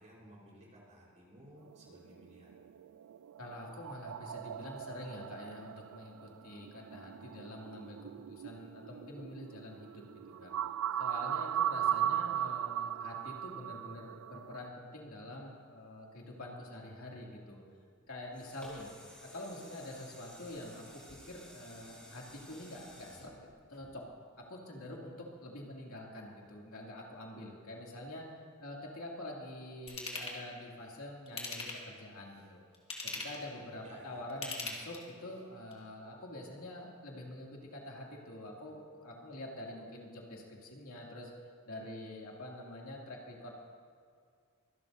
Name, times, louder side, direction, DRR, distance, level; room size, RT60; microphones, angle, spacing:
voice 1, 0.0-2.5 11.9-12.3 33.8-34.3, equal, 35° right, -4 dB, 4.1 m, -56 dB
sound 1, 1.7-14.7, right 10 dB, 85° right, 0.3 m, -38 dB
voice 2, 3.4-10.5 11.0-17.6 18.1-18.9 19.2-24.0 24.5-28.3 28.6-32.6 33.2-41.3 41.7-43.6, left 1 dB, 85° left, -2 dB, 2.5 m, -46 dB
sound 2, 18.0-24.4 24.9-25.0, left 1 dB, 5° left, 4.2 m, -55 dB
Ratchet pawl / Tools, 29.9-30.4 31.3-32.0 32.7-33.5 34.3-35.2 35.7-35.8, left 3 dB, 25° left, 2.2 m, -40 dB
24.5 x 12.0 x 2.7 m, 2.2 s
head